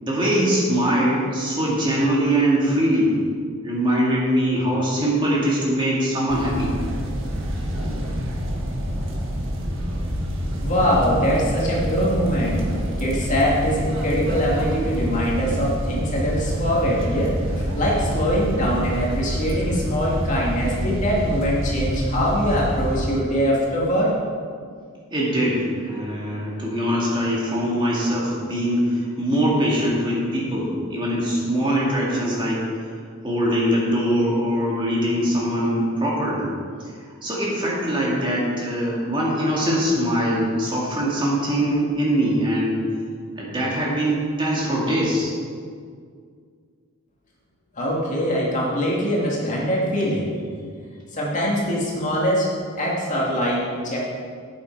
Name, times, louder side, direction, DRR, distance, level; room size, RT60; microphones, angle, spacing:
voice 1, 0.0-3.1 3.6-6.7 25.1-32.9 33.2-36.5 36.8-36.9 37.2-42.8 43.4-45.3, equal, 20° right, -5 dB, 2.1 m, -22 dB
sound 1, 6.3-23.1, equal, 60° right, 1.7 m, -27 dB
voice 2, 10.6-12.6 13.0-17.3 17.6-24.1 47.7-50.4 51.1-52.5 52.8-54.0, equal, 35° left, -4 dB, 2.3 m, -23 dB
12.0 x 8.4 x 4.8 m, 2.1 s
head